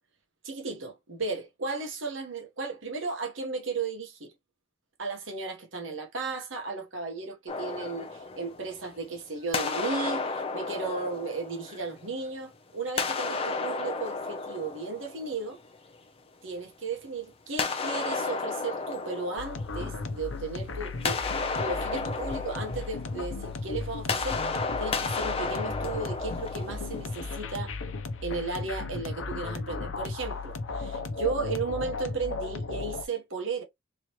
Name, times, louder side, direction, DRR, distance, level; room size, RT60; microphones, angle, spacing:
voice 1, 0.4-4.3 5.0-15.6 16.4-21.2 21.6-27.7 28.2-33.6, right 4 dB, 75° right, 1.3 m, -35 dB
sound 1, 7.5-9.1 9.5-12.3 12.9-15.8 17.6-20.4 20.7-27.4, left 4 dB, 30° left, 0.6 m, -33 dB
sound 2, 19.4-33.0, left 3 dB, 80° left, 0.7 m, -35 dB
3.7 x 3.1 x 3.0 m
head